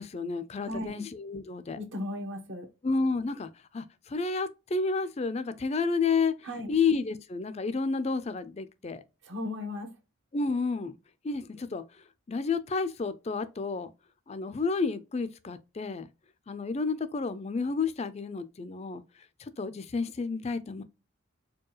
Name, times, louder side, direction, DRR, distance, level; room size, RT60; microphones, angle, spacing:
voice 1, 0.0-1.8 2.8-3.5 3.7-6.4 6.7-9.0 10.3-11.0 11.2-11.8 12.3-13.9 14.3-16.1 16.5-19.0 19.4-20.8, left 4 dB, 30° left, 0.4 m, -30 dB
voice 2, 0.6-1.0 1.8-2.7 6.4-6.7 9.2-9.9, left 1 dB, 60° right, 1.0 m, -36 dB
4.5 x 2.3 x 3.0 m
head